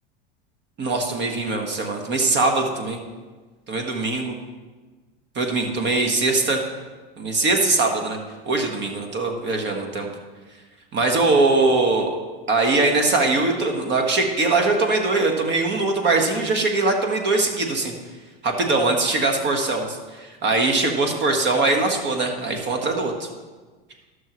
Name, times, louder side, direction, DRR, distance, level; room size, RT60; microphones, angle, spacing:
voice 1, 0.8-3.0 3.7-4.4 5.3-6.6 7.2-8.2 8.4-10.1 10.9-12.1 12.5-17.9 18.4-23.3, right 3 dB, 40° right, 3 dB, 1.4 m, -21 dB
13.5 x 6.4 x 3.1 m, 1.3 s
hypercardioid pair, 100°, 29 cm